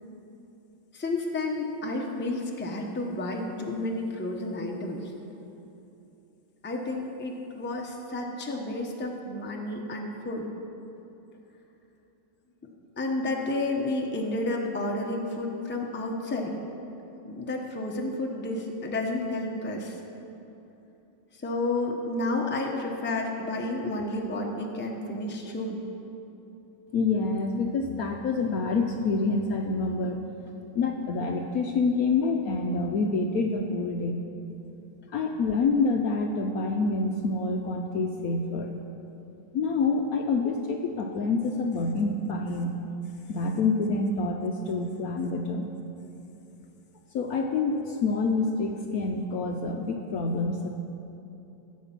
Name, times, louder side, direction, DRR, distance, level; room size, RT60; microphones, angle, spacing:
voice 1, 0.9-5.1 6.6-10.5 13.0-16.5 17.2-20.0 21.4-25.8, left 2 dB, 10° left, 0 dB, 0.7 m, -31 dB
voice 2, 26.9-30.2 30.7-34.2 35.1-38.7 39.5-42.8 43.3-45.7 47.1-50.7, left 3 dB, 65° left, 3 dB, 1.0 m, -27 dB
14.5 x 7.4 x 5.9 m, 2.9 s
omnidirectional pair, 1.9 m